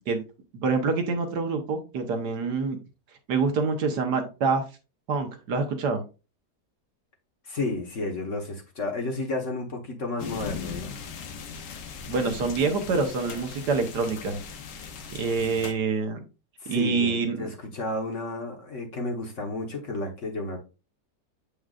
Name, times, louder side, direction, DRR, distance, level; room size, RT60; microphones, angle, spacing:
voice 1, 0.5-2.8 3.3-4.7 5.1-6.0 12.0-14.4 15.1-16.2 16.7-17.5, right 4 dB, 70° right, 1.6 m, -26 dB
voice 2, 7.5-10.9 16.6-20.6, left 2 dB, 45° left, 1.4 m, -32 dB
sound 1, 10.2-15.7, left 6 dB, 75° left, 1.5 m, -39 dB
7.8 x 5.1 x 2.4 m
omnidirectional pair, 1.9 m